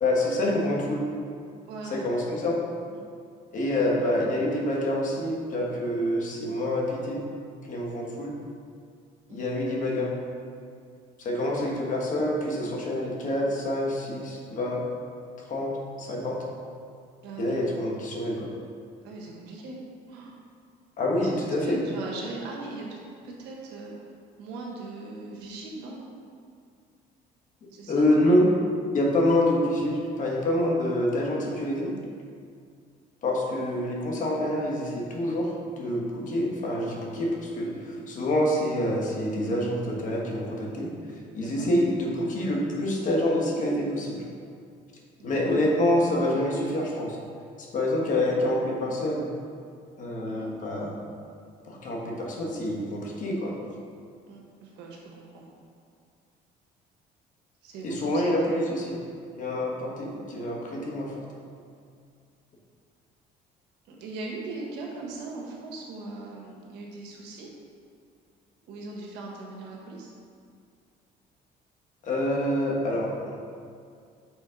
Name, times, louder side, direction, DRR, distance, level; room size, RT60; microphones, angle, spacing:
voice 1, 0.0-1.0 1.8-2.6 3.5-7.2 7.7-8.3 9.3-10.1 11.2-14.8 15.5-15.7 16.0-16.4 17.4-18.5 21.0-21.8 27.9-28.5 28.9-31.9 33.2-44.2 45.2-47.2 47.6-49.2 50.0-50.9 51.6-53.6 57.8-59.0 59.3-61.3 72.0-73.4, left 1 dB, 50° left, -2 dB, 1.4 m, -27 dB
voice 2, 1.7-2.3 2.9-3.1 9.3-9.5 17.2-17.6 19.0-19.8 20.1-20.4 21.2-23.0 23.2-23.9 24.4-26.0 27.7-28.1 41.4-41.7 45.2-45.6 50.2-50.5 54.3-55.5 57.6-58.5 63.9-67.5 68.6-70.1, right 3 dB, 85° right, -1 dB, 1.3 m, -40 dB
6.2 x 4.0 x 5.0 m, 2.3 s
cardioid pair, 110°, 17 cm